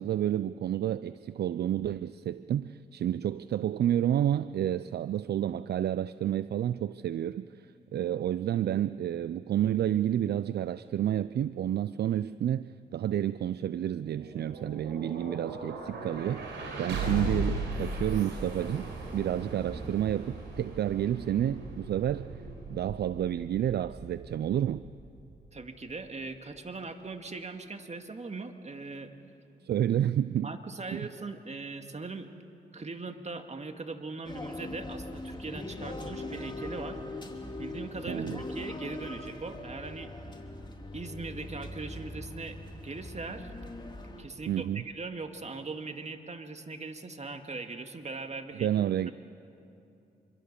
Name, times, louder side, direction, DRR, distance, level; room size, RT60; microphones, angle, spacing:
voice 1, 0.0-16.5 16.8-18.9 19.1-22.3 22.7-24.9 29.6-30.5 30.9-31.0 38.1-38.4 44.5-44.8 48.6-49.1, right 11 dB, 65° right, 16 dB, 0.5 m, -30 dB
sound 1, 13.9-26.0, right 2 dB, 85° right, 4.4 m, -38 dB
voice 2, 25.5-29.1 30.4-32.3 32.7-37.0 37.6-40.1 40.9-42.6 42.8-43.5 44.2-48.7, right 3 dB, 40° right, 6 dB, 2.1 m, -40 dB
sound 2, 34.2-44.2, left 2 dB, 25° left, 3.0 m, -41 dB
26.0 x 22.5 x 6.8 m, 2.8 s
supercardioid pair, 50°, 18 cm